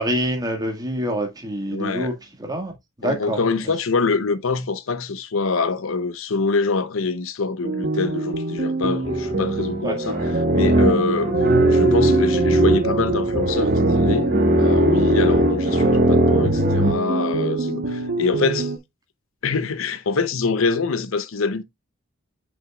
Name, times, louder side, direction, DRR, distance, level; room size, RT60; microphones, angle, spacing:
voice 1, 0.0-2.1 2.4-3.4 9.8-10.0, right 1 dB, 20° right, 1.7 m, -26 dB
voice 2, 1.7-2.1 3.0-10.2 10.5-11.3 11.6-18.7 19.4-21.6, left 4 dB, 75° left, 0.7 m, -25 dB
sound 1, 7.6-18.8, right 3 dB, 60° right, 1.0 m, -26 dB
sound 2, 9.0-16.9, right 1 dB, 45° right, 1.4 m, -19 dB
7.7 x 5.4 x 2.3 m
head